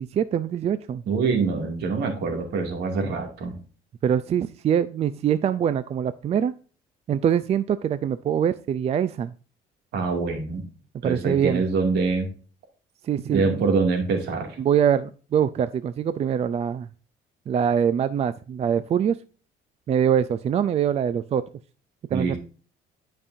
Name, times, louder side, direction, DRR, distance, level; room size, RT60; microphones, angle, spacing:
voice 1, 0.0-1.0 4.0-6.5 7.1-9.3 11.0-11.6 13.0-13.6 14.6-16.9 17.5-19.2 19.9-21.4 22.1-22.4, right 8 dB, 40° right, 14 dB, 0.4 m, -23 dB
voice 2, 1.1-3.5 9.9-10.6 11.0-12.3 13.3-14.5 22.1-22.4, right 4 dB, 75° right, 3 dB, 2.4 m, -24 dB
11.0 x 5.4 x 2.7 m, 0.38 s
cardioid pair, 110°, 17 cm